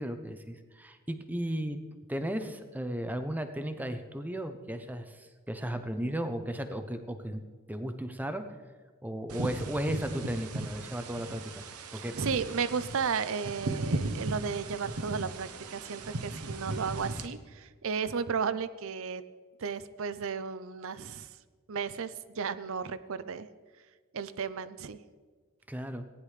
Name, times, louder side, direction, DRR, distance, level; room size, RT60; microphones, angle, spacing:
voice 1, 0.0-1.8 2.1-7.4 7.7-8.4 9.0-11.6 11.9-12.1 25.7-26.0, right 1 dB, 10° right, 8 dB, 0.7 m, -35 dB
sound 1, 9.3-17.3, right 2 dB, 85° right, 0.9 m, -37 dB
voice 2, 11.9-19.2 19.6-21.3 21.7-23.5 24.1-25.0, right 6 dB, 65° right, 14 dB, 0.6 m, -34 dB
18.0 x 10.5 x 3.3 m, 1.5 s
head